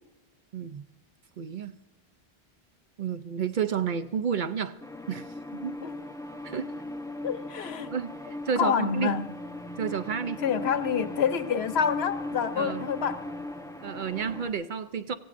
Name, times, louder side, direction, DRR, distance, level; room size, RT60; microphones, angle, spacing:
voice 1, 0.5-0.9 1.4-1.8 3.0-4.8 5.1-5.2 5.5-5.8 6.4-6.7 7.9-8.1 8.5-9.1 9.8-10.4 12.6-12.9 13.8-15.1, right 7 dB, 55° right, 0.6 m, -30 dB
sound 1, 4.8-14.5, left 1 dB, 5° left, 0.7 m, -38 dB
voice 2, 7.2-7.9 8.6-9.3 10.4-13.3, left 7 dB, 80° left, 1.0 m, -27 dB
26.0 x 15.5 x 2.6 m
omnidirectional pair, 1.1 m